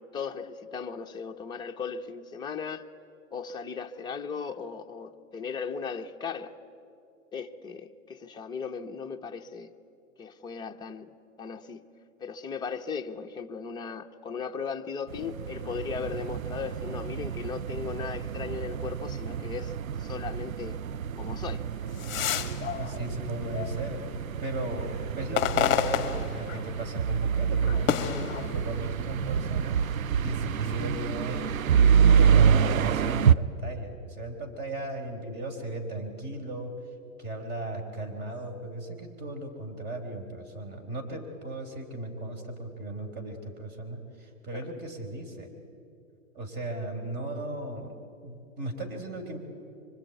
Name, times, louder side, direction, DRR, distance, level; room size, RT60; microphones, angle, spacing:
voice 1, 0.0-2.8 3.3-6.6 7.3-9.7 10.2-11.9 12.2-19.7 20.0-20.8 21.1-21.7 44.5-44.6, left 5 dB, 10° left, 0.9 m, -37 dB
sound 1, 15.1-33.3, right 7 dB, 80° right, 0.9 m, -27 dB
sound 2, 21.7-24.1 24.6-26.9 27.2-29.1 29.8-30.7, left 10 dB, 25° left, 1.9 m, -31 dB
voice 2, 22.8-24.1 24.4-29.8 30.2-31.4 32.1-36.8 37.2-45.5 46.3-48.0 48.2-49.4, right 1 dB, 25° right, 4.4 m, -36 dB
25.5 x 24.5 x 9.3 m
hypercardioid pair, 125°, 41 cm